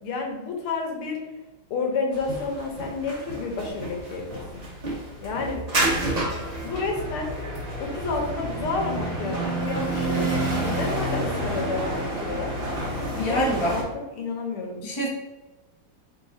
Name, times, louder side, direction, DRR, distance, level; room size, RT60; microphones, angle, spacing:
voice 1, 0.0-1.2 1.7-4.6 5.2-6.2 6.6-7.3 7.8-12.5 13.1-13.8 14.1-14.8, left 4 dB, 80° left, 1 dB, 1.7 m, -30 dB
sound 1, 2.1-13.8, right 1 dB, 40° right, 0.5 m, -29 dB
voice 2, 13.2-13.7 14.8-15.1, equal, 40° left, -4 dB, 0.4 m, -25 dB
4.9 x 3.4 x 2.6 m, 1.1 s
omnidirectional pair, 2.4 m